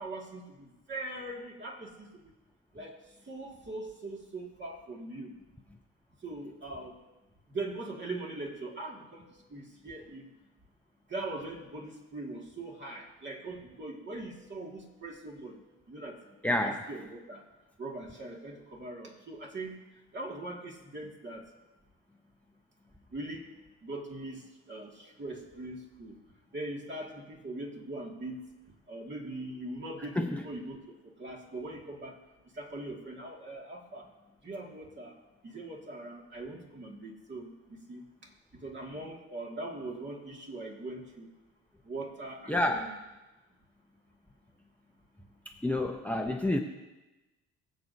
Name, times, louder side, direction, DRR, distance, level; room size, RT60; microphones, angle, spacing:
voice 1, 0.0-2.1 2.7-3.0 3.3-5.3 6.2-7.0 7.5-10.3 11.1-15.6 15.9-16.2 16.6-17.4 17.8-19.8 20.1-21.5 23.1-23.5 23.8-26.2 26.5-28.5 28.9-32.2 32.6-34.1 34.4-35.2 35.4-37.5 37.9-38.0 38.5-41.3 41.8-43.0, right 2 dB, 40° right, -1 dB, 2.3 m, -41 dB
voice 2, 16.4-16.8 30.2-30.4 42.5-42.9 45.6-46.6, left 1 dB, 5° left, 3 dB, 0.8 m, -28 dB
23.0 x 7.7 x 2.8 m, 1.1 s
cardioid pair, 90°, 30 cm